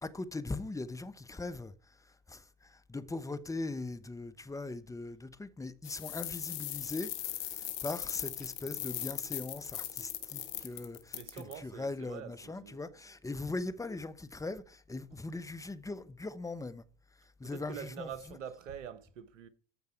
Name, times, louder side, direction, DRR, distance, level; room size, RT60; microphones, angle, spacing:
voice 1, 0.0-1.7 2.3-7.1 7.4-16.8 17.4-18.4, left 3 dB, 10° left, 1.0 m, -40 dB
sound 1, 5.8-11.5, left 13 dB, 55° left, 1.7 m, -39 dB
voice 2, 11.1-12.8 15.1-15.2 17.4-19.5, right 8 dB, 80° right, 1.2 m, -45 dB
14.5 x 5.3 x 4.6 m
hypercardioid pair, 80°, 37 cm